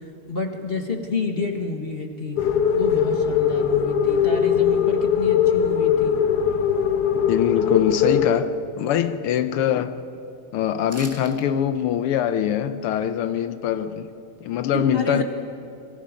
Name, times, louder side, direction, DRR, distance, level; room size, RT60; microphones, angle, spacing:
voice 1, 0.3-2.4 2.7-6.2 7.6-7.7 14.7-15.2, left 3 dB, 30° left, 1.4 m, -29 dB
sound 1, 2.4-8.3, left 7 dB, 60° left, 1.2 m, -20 dB
voice 2, 7.3-10.0 10.5-14.1 14.4-15.2, left 10 dB, 85° left, 1.7 m, -23 dB
sound 2, 10.9-11.5 11.8-11.9, right 1 dB, 10° right, 1.3 m, -40 dB
26.5 x 23.5 x 5.1 m
omnidirectional pair, 2.4 m